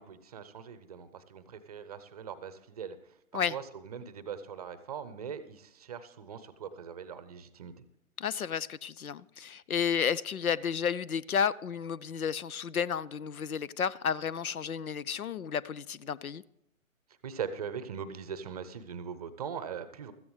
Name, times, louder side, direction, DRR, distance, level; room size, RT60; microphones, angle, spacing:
voice 1, 0.0-7.8 17.2-20.1, right 7 dB, 25° right, 0.7 m, -41 dB
voice 2, 8.2-16.4, left 7 dB, 90° left, 0.6 m, -32 dB
15.5 x 14.0 x 3.2 m
figure-of-eight pair, 140°, 42 cm